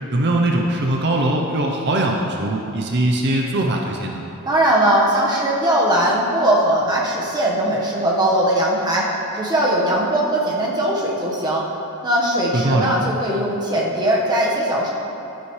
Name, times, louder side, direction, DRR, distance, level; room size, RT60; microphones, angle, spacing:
voice 1, 0.1-4.2 12.5-12.9, right 1 dB, 50° right, 1 dB, 0.7 m, -21 dB
voice 2, 4.4-11.7 12.0-14.9, right 1 dB, 20° right, -4 dB, 1.3 m, -19 dB
12.0 x 9.9 x 3.2 m, 2.9 s
head